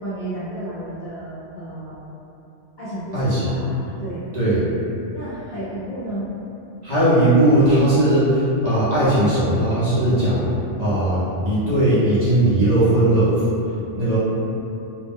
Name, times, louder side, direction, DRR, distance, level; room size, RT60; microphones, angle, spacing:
voice 1, 0.0-2.0 2.8-4.3 5.1-6.3, right 1 dB, 55° left, -11 dB, 0.5 m, -32 dB
voice 2, 3.1-3.5 4.3-4.6 6.8-10.5 10.8-13.4 14.0-14.2, right 1 dB, 45° right, -12 dB, 0.6 m, -18 dB
2.4 x 2.0 x 3.5 m, 2.8 s
omnidirectional pair, 1.3 m